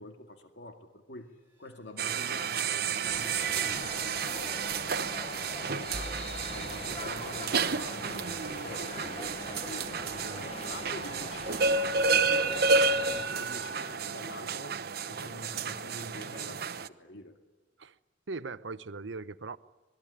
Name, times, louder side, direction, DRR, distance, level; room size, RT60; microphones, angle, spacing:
voice 1, 0.0-6.2 6.5-9.9 10.7-11.4 11.7-17.4, left 1 dB, 70° left, 2.1 m, -46 dB
sound 1, 1.2-14.1, equal, 15° right, 3.6 m, -54 dB
sound 2, 2.0-16.9, right 4 dB, 55° right, 0.9 m, -31 dB
sound 3, 3.0-13.3, left 3 dB, 35° left, 0.9 m, -43 dB
voice 2, 9.9-10.5 17.8-17.9 18.3-19.6, right 3 dB, 85° right, 0.8 m, -40 dB
26.0 x 20.5 x 9.9 m
head